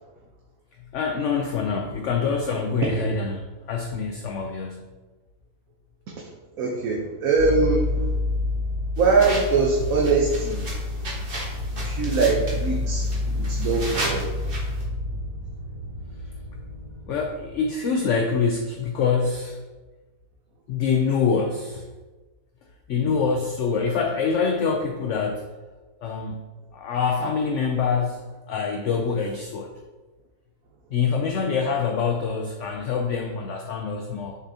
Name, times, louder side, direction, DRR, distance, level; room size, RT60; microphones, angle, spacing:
voice 1, 0.8-4.9 17.1-19.6 20.7-21.9 22.9-25.5 26.0-26.4 26.7-29.7 30.9-34.4, left 5 dB, 70° left, 3 dB, 0.7 m, -25 dB
voice 2, 6.1-8.1 9.0-10.6 11.8-14.3, right 4 dB, 65° right, -2 dB, 1.1 m, -23 dB
sound 1, 7.4-17.6, left 2 dB, 90° right, 1.7 m, -29 dB
sound 2, 9.0-14.8, right 1 dB, 35° right, 1.5 m, -35 dB
6.7 x 6.1 x 2.7 m, 1.2 s
omnidirectional pair, 1.7 m